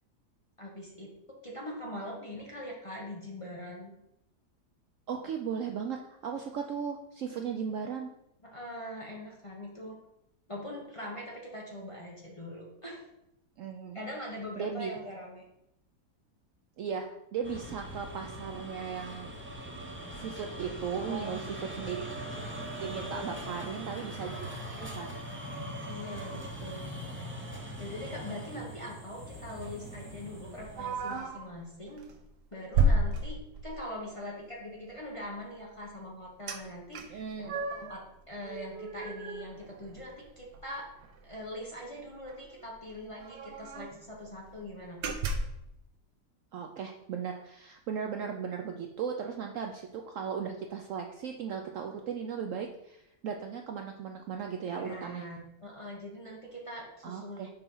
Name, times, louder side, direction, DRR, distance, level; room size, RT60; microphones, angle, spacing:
voice 1, 0.6-1.1 1.4-3.9 7.4-7.5 8.4-10.0 10.5-13.0 13.9-15.4 21.0-21.7 23.1-23.9 25.9-26.9 27.1-27.3 27.8-32.1 32.5-40.9 41.2-45.1 54.7-57.5, left 1 dB, 25° left, -3 dB, 0.9 m, -42 dB
voice 2, 5.1-8.1 13.6-14.0 14.6-14.9 16.8-17.1 17.3-19.3 20.1-22.1 22.8-25.2 37.1-37.6 46.5-55.2 57.0-57.5, right 7 dB, 65° right, 3 dB, 0.8 m, -37 dB
sound 1, 17.4-31.3, right 1 dB, 20° right, 0.3 m, -41 dB
sound 2, 30.8-31.5 32.0-32.2 32.7-33.9 36.5-36.6 36.9-38.0 38.4-40.2 40.5-40.6 41.0-41.2 42.3-42.4 42.6-42.7 43.2-44.0 44.5-44.6 45.0-45.7, right 2 dB, 85° right, 1.3 m, -32 dB
5.4 x 4.3 x 5.4 m, 0.83 s
omnidirectional pair, 1.7 m